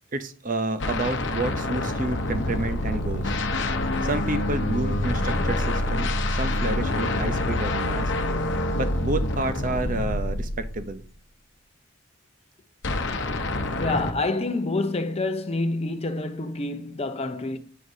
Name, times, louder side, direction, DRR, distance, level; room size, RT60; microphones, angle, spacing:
voice 1, 0.1-3.4 4.0-8.1 8.7-11.0, right 2 dB, 40° right, 0.7 m, -30 dB
sound 1, 0.8-11.1 12.8-14.1, left 1 dB, 60° left, 0.9 m, -26 dB
voice 2, 13.8-17.6, left 2 dB, 30° left, 0.8 m, -27 dB
11.0 x 7.8 x 2.8 m
head